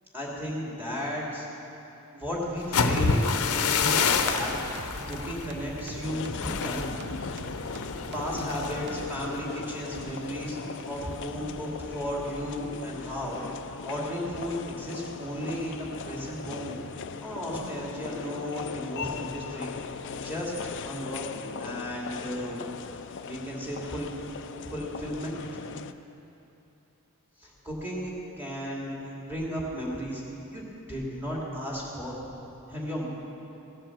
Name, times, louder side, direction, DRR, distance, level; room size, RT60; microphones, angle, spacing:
voice 1, 0.1-1.5 2.1-4.5 5.0-6.9 8.1-16.8 17.2-21.2 21.6-22.6 23.3-24.1 24.6-25.4 27.4-28.1 28.4-30.2 30.5-32.2 32.7-33.1, equal, 10° right, -5 dB, 2.8 m, -34 dB
sound 1, 2.6-10.4 10.8-11.1 11.5-11.9, left 5 dB, 85° left, 0.8 m, -29 dB
sound 2, 3.3-9.2, right 2 dB, 50° right, 0.8 m, -43 dB
sound 3, 6.0-25.9, left 5 dB, 55° left, 0.5 m, -39 dB
17.0 x 7.6 x 7.4 m, 3.0 s
head